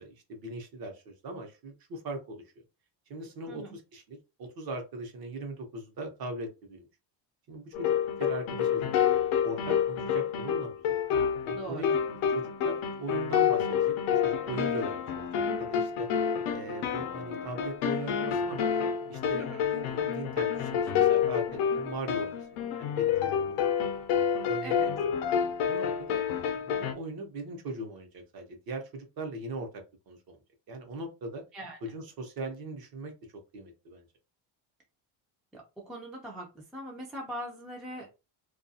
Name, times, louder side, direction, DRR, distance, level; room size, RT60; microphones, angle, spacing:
voice 1, 0.0-2.4 3.1-6.9 7.5-7.9 8.2-11.0 11.4-12.0 12.3-15.3 15.6-16.1 16.5-18.7 19.1-23.7 24.5-25.2 25.6-26.2 26.6-30.4 30.7-31.4 31.8-33.1 33.5-34.1, right 2 dB, 45° right, 4 dB, 0.8 m, -40 dB
sound 1, 7.7-26.9, left 8 dB, 85° left, 0.6 m, -28 dB
voice 2, 11.5-12.0 19.4-19.6 24.6-24.9 31.5-31.8 35.5-38.2, right 1 dB, ahead, -2 dB, 0.3 m, -41 dB
2.3 x 2.3 x 2.6 m, 0.28 s
cardioid pair, 145°, 49 cm